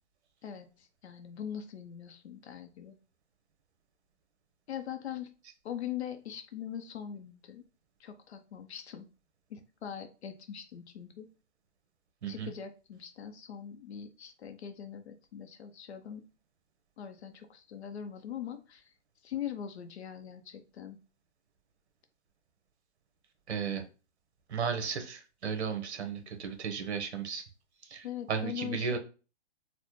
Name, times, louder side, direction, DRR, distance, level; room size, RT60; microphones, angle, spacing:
voice 1, 0.4-2.9 4.7-5.3 5.6-7.6 8.0-9.1 9.5-11.3 12.3-16.2 17.0-18.9 19.2-21.0 28.0-29.0, left 9 dB, 65° left, 7 dB, 0.6 m, -42 dB
voice 2, 23.5-23.8 24.5-27.4 27.9-29.0, right 6 dB, 70° right, 6 dB, 1.0 m, -34 dB
4.1 x 2.1 x 3.0 m, 0.34 s
hypercardioid pair, 150°, 35 cm